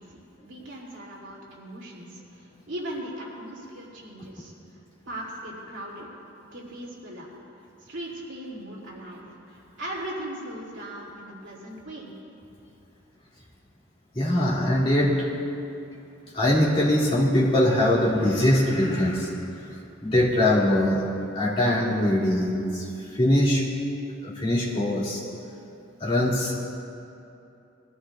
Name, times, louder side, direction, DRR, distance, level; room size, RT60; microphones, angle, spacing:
voice 1, 0.0-4.5 5.1-6.1 6.5-7.3 7.8-9.2 9.5-12.1, right 1 dB, 60° right, -4 dB, 2.7 m, -38 dB
voice 2, 14.1-15.3 16.3-19.3 20.0-21.0 21.3-22.9 23.1-23.7 24.2-25.2 26.0-26.6, left 1 dB, 25° left, -7 dB, 2.4 m, -22 dB
22.0 x 14.0 x 2.4 m, 2.7 s
head